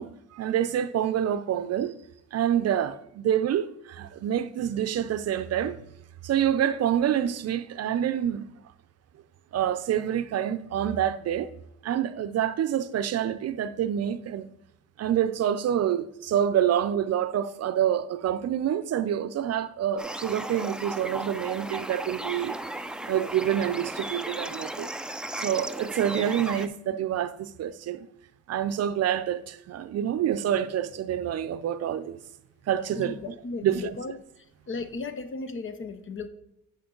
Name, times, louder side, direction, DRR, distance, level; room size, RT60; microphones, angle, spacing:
voice 1, 0.0-1.9 2.3-5.8 6.2-8.4 9.5-11.5 11.8-14.5 15.0-22.6 23.1-24.9 25.4-28.1 28.5-32.2 32.7-33.3 33.6-34.0, right 10 dB, 55° right, 0.5 m, -27 dB
sound 1, 20.0-26.7, right 1 dB, 5° right, 0.4 m, -35 dB
voice 2, 33.0-34.2 34.7-36.3, left 4 dB, 40° left, 0.9 m, -35 dB
9.5 x 4.6 x 3.8 m
cardioid pair, 90°, 30 cm